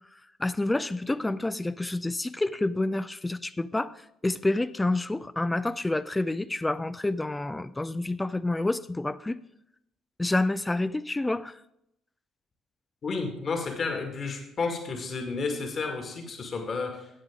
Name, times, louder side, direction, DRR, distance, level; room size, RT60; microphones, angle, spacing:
voice 1, 0.4-9.4 10.2-11.6, left 2 dB, 15° left, 14 dB, 0.4 m, -28 dB
voice 2, 13.0-17.1, left 4 dB, 45° left, 4 dB, 2.0 m, -31 dB
13.0 x 8.9 x 3.7 m, 0.78 s
figure-of-eight pair, 50°, 0 cm